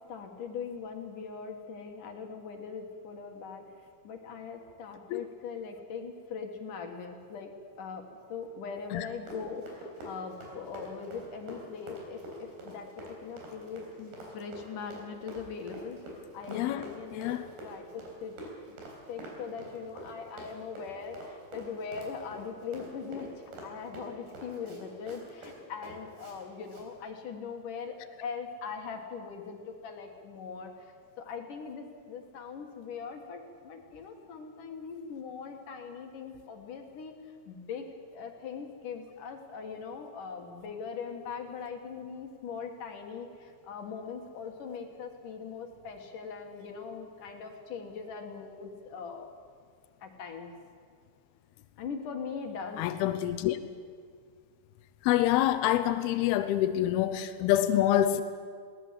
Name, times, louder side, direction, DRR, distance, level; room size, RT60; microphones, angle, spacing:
voice 1, 0.0-7.5 7.8-18.4 18.7-18.8 19.1-37.1 37.5-49.3 50.0-50.5 51.8-53.0, left 5 dB, 60° left, 4 dB, 3.0 m, -41 dB
Run, 9.0-26.4 26.7-26.9, right 1 dB, 90° right, 5.7 m, -46 dB
voice 2, 16.5-16.8 17.1-17.4 52.8-53.6 55.0-58.2, left 12 dB, 85° left, 11 dB, 2.7 m, -26 dB
21.0 x 17.5 x 7.6 m, 2.1 s
omnidirectional pair, 4.4 m